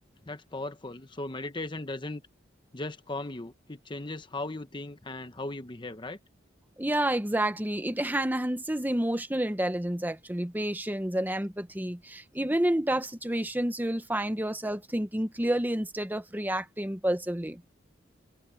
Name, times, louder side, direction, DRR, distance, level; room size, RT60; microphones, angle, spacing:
voice 1, 0.3-2.2 2.7-6.2, left 2 dB, 25° left, 0.9 m, -37 dB
voice 2, 6.8-17.6, right 1 dB, 10° right, 1.0 m, -29 dB
head